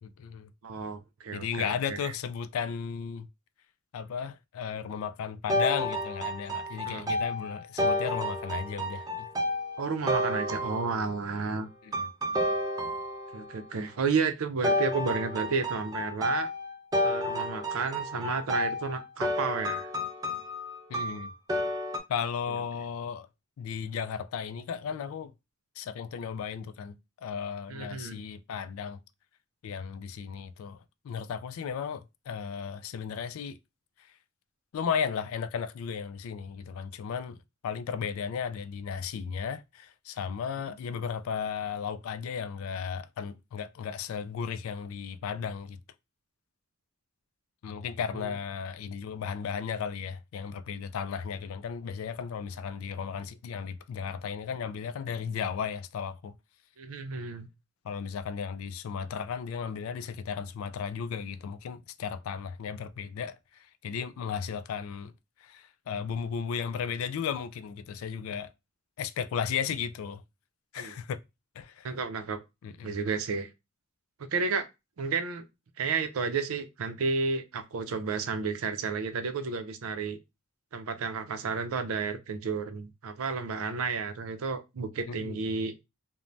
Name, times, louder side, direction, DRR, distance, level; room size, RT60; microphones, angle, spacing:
voice 1, 0.0-0.5 1.3-3.3 3.9-9.3 11.8-12.1 20.9-21.3 22.1-23.3 23.6-25.3 25.8-27.0 27.2-29.0 29.6-30.8 31.0-33.6 34.7-37.4 37.6-45.8 47.6-56.3 57.8-63.4 63.8-65.1 65.4-68.5 69.0-70.2 70.7-71.2 71.6-71.9 72.6-72.9 85.1-85.4, left 7 dB, 80° left, 0.3 m, -35 dB
voice 2, 0.6-2.1 6.9-7.2 9.8-11.7 13.3-16.5 17.0-19.9 27.7-28.2 48.1-48.4 56.8-57.5 70.8-71.0 71.8-72.4 72.8-73.5 74.3-74.7 75.0-75.5 75.8-80.2 80.7-85.7, right 5 dB, 85° right, 0.5 m, -32 dB
sound 1, 5.5-11.3 11.9-13.6 14.6-22.0, left 1 dB, 15° right, 0.3 m, -31 dB
2.5 x 2.1 x 3.2 m
head